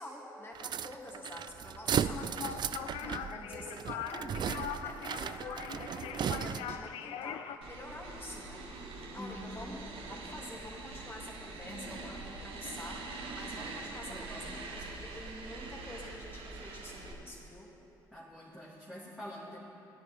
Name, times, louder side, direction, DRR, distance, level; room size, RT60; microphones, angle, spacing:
voice 1, 0.0-8.7 9.1-17.7, left 1 dB, 20° left, -4 dB, 3.0 m, -47 dB
sound 1, 0.5-6.9, right 9 dB, 45° right, 0.4 m, -36 dB
sound 2, 2.0-7.6, left 9 dB, 65° left, 0.5 m, -41 dB
sound 3, 7.6-17.1, right 3 dB, 60° right, 1.4 m, -44 dB
voice 2, 9.2-9.8 11.7-12.0 14.1-14.7 18.1-19.6, left 1 dB, 5° left, -9 dB, 2.3 m, -46 dB
16.5 x 10.0 x 3.7 m, 3.0 s
hypercardioid pair, 50°, 10 cm